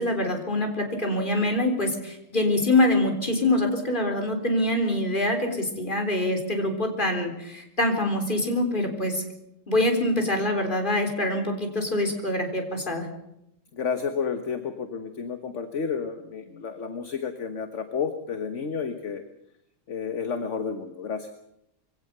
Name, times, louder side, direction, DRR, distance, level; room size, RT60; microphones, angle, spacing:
voice 1, 0.0-9.2 9.7-13.1, left 1 dB, 40° left, 4 dB, 4.0 m, -25 dB
voice 2, 13.7-19.2 19.9-21.3, left 6 dB, 65° left, 8 dB, 1.6 m, -31 dB
22.5 x 17.5 x 6.8 m, 0.79 s
omnidirectional pair, 1.4 m